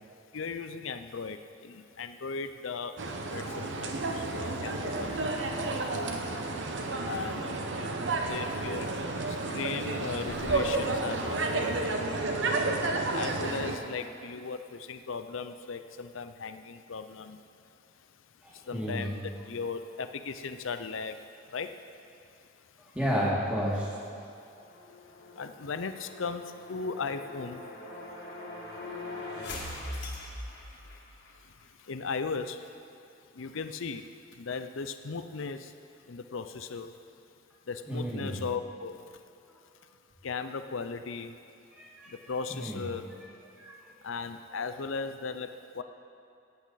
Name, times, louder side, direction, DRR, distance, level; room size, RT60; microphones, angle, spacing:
voice 1, 0.3-6.2 7.0-7.4 8.3-8.9 9.3-11.8 13.1-17.4 18.0-18.1 18.5-21.8 22.0-22.9 25.3-27.6 29.9-30.1 30.5-31.0 31.3-32.8 33.3-35.8 36.0-36.9 37.7-39.2 40.2-41.3 42.1-43.1 44.0-45.8, left 4 dB, 80° left, 9 dB, 0.6 m, -37 dB
sound 1, 3.0-13.8, right 2 dB, 65° right, 0.9 m, -31 dB
voice 2, 18.4-19.2 22.9-24.0 37.9-38.4 41.7-42.1 42.5-42.9 43.6-43.9, equal, 5° right, -6 dB, 2.1 m, -32 dB
sound 2, 24.6-31.4, left 2 dB, 55° left, 2.0 m, -42 dB
17.0 x 8.6 x 4.1 m, 2.7 s
head